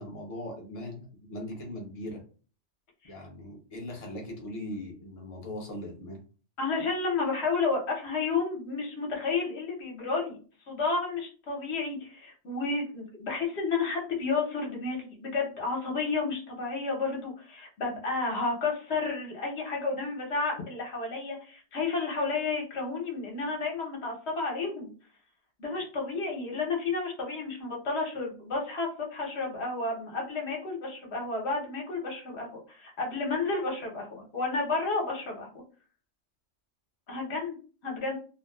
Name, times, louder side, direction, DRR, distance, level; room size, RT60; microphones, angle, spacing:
voice 1, 0.0-2.2 3.1-6.2, left 1 dB, 35° left, 0 dB, 0.7 m, -39 dB
voice 2, 6.6-10.4 10.7-24.9 25.6-35.5 37.1-37.6 37.8-38.1, left 3 dB, 65° left, -1 dB, 1.1 m, -31 dB
2.6 x 2.2 x 2.3 m, 0.38 s
omnidirectional pair, 1.3 m